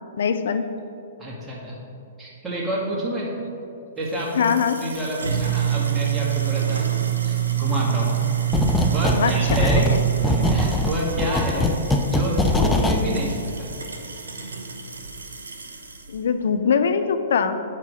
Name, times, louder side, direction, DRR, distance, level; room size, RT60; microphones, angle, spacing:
voice 1, 0.2-0.7 4.4-4.8 9.1-9.3 9.6-10.0 16.1-17.6, left 6 dB, 70° left, 9 dB, 0.5 m, -22 dB
voice 2, 1.2-1.8 2.2-3.3 4.0-4.5 4.8-6.9 7.2-8.2 8.9-9.9 10.2-11.7 12.0-13.7, equal, 10° right, -5 dB, 1.8 m, -28 dB
sound 1, 4.1-16.1, right 10 dB, 85° right, 0.9 m, -26 dB
sound 2, 8.5-9.2 9.5-13.0, left 2 dB, 10° left, 0.5 m, -22 dB
5.8 x 4.7 x 6.2 m, 2.6 s
hypercardioid pair, 125°, 0 cm